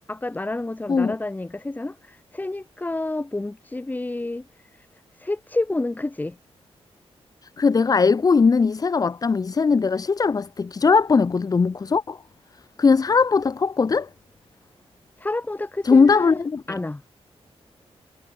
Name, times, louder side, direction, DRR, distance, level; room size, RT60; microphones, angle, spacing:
voice 1, 0.1-2.0 2.3-4.5 5.2-6.4 15.2-17.0, left 2 dB, 15° left, 5.5 m, -29 dB
voice 2, 7.6-12.2 12.8-14.1 15.8-16.8, left 5 dB, 35° left, 1.5 m, -19 dB
wide cardioid pair, 140°, 11 cm